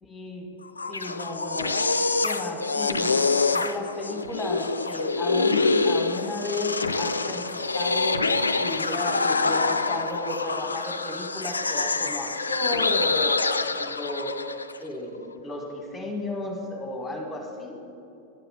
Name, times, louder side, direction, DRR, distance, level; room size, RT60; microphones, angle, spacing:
voice 1, 0.0-0.6 0.9-1.8 2.2-3.2 3.5-8.3 8.6-14.4 14.8-17.8, left 2 dB, 15° left, 2 dB, 1.4 m, -34 dB
sound 1, 0.6-14.8, left 3 dB, 75° left, 0.3 m, -26 dB
10.0 x 5.7 x 6.2 m, 2.8 s
figure-of-eight pair, 90°, 0 cm